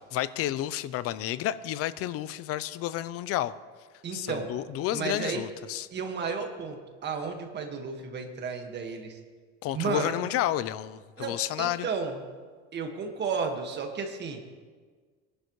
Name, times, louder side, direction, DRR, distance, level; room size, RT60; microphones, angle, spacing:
voice 1, 0.1-3.5 4.1-5.9 9.6-11.9, left 13 dB, 45° left, 15 dB, 0.6 m, -31 dB
voice 2, 4.0-4.5 4.9-5.4 5.9-9.2 9.7-10.1 11.2-12.2 12.7-14.4, right 5 dB, 30° right, 4 dB, 1.8 m, -33 dB
22.5 x 11.0 x 3.2 m, 1.5 s
cardioid pair, 140°, 33 cm